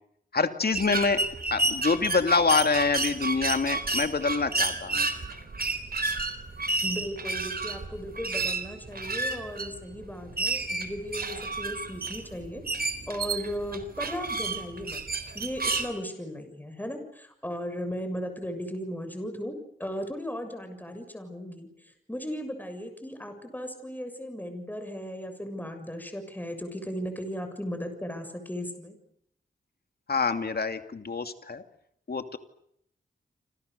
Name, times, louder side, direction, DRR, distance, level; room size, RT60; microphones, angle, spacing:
voice 1, 0.3-1.2 1.5-5.1 30.1-31.6 32.1-32.4, left 4 dB, 55° left, 8 dB, 2.6 m, -26 dB
sound 1, 0.7-15.9, right 3 dB, 50° right, 4.0 m, -31 dB
voice 2, 6.8-15.0 15.3-29.0, equal, 10° left, 7 dB, 7.0 m, -36 dB
28.5 x 27.0 x 6.9 m, 0.72 s
wide cardioid pair, 80°, 19 cm